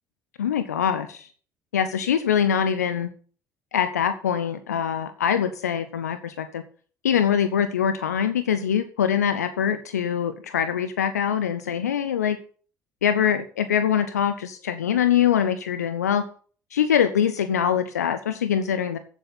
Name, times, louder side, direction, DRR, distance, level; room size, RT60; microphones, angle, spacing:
voice 1, 0.4-1.3 1.7-3.1 3.7-6.6 7.0-12.4 13.0-16.2 16.7-19.0, left 8 dB, 80° left, 12 dB, 0.6 m, -23 dB
15.0 x 7.2 x 4.0 m, 0.44 s
figure-of-eight pair, 55°, 9 cm